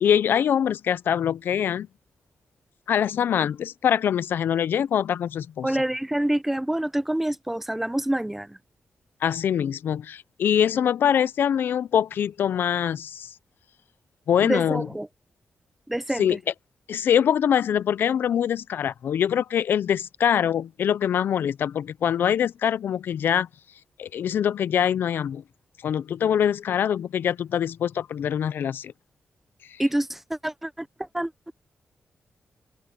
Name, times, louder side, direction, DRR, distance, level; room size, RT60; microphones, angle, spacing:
voice 1, 0.0-1.9 2.9-5.7 9.2-13.3 14.3-14.9 16.2-16.4 16.9-23.5 24.0-25.4 25.8-28.9, left 9 dB, 75° left, 0.5 m, -24 dB
voice 2, 5.6-8.6 14.4-15.1 15.9-16.4 29.8-31.5, right 1 dB, 5° right, 0.7 m, -27 dB
open air
wide cardioid pair, 175°, 4 cm